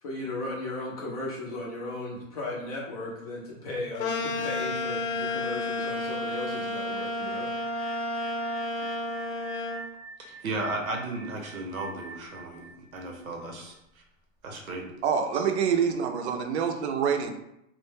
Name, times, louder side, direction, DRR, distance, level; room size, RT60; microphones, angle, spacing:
voice 1, 0.0-7.5, left 2 dB, 30° left, -3 dB, 0.4 m, -36 dB
sound 1, 4.0-9.8, left 2 dB, 70° left, 0.7 m, -31 dB
sound 2, 6.8-13.7, right 3 dB, 10° right, 0.8 m, -47 dB
voice 2, 10.2-14.0 14.4-14.9 15.3-15.4, right 2 dB, 90° right, 2 dB, 0.8 m, -35 dB
voice 3, 15.0-17.3, right 7 dB, 55° right, 5 dB, 0.5 m, -26 dB
2.1 x 2.0 x 3.2 m, 0.82 s
hypercardioid pair, 130°, 41 cm